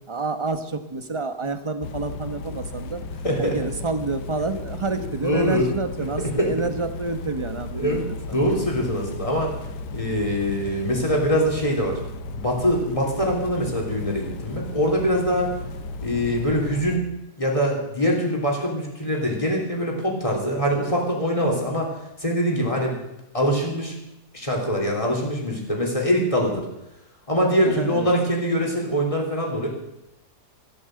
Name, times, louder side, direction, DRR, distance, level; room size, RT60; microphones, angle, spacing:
voice 1, 0.1-3.0 3.4-8.4 27.7-28.1, right 3 dB, 25° right, 9 dB, 0.9 m, -28 dB
sound 1, 1.8-17.0, left 2 dB, 90° left, 1.3 m, -35 dB
voice 2, 3.2-3.6 4.9-6.5 7.8-8.0 8.3-9.5 9.9-15.5 16.0-17.1 17.4-21.9 22.2-23.0 23.3-23.9 24.3-26.7 27.3-29.7, equal, 20° left, -1 dB, 3.6 m, -23 dB
15.5 x 8.8 x 7.8 m, 0.89 s
omnidirectional pair, 1.7 m